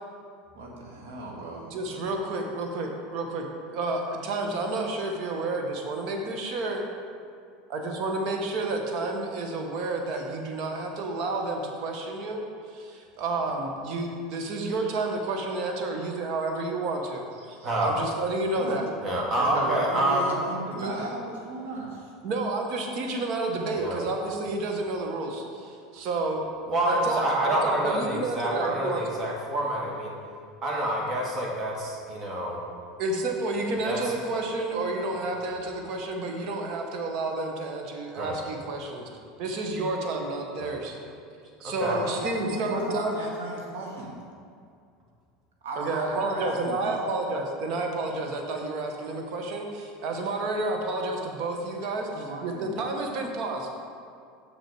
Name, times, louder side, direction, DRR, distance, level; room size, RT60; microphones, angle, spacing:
voice 1, 0.5-2.0 17.5-17.7 18.6-18.8 19.4-22.1 41.9-44.2 45.6-47.2 51.9-52.8, right 2 dB, 80° right, -2 dB, 1.6 m, -35 dB
voice 2, 1.7-3.5 3.7-6.8 7.7-12.4 12.7-18.9 20.8-20.9 22.2-26.5 26.8-29.2 33.0-39.1 39.4-41.0 41.6-43.2 45.8-53.7, right 2 dB, 60° right, 2 dB, 1.2 m, -30 dB
voice 3, 17.6-18.0 19.0-20.3 23.8-24.0 26.7-30.1 30.6-32.6 33.8-34.0 38.1-38.4 40.6-40.7 41.6-42.0, right 1 dB, 40° right, -2 dB, 1.9 m, -27 dB
6.5 x 6.0 x 4.8 m, 2.3 s
hypercardioid pair, 90°, 0 cm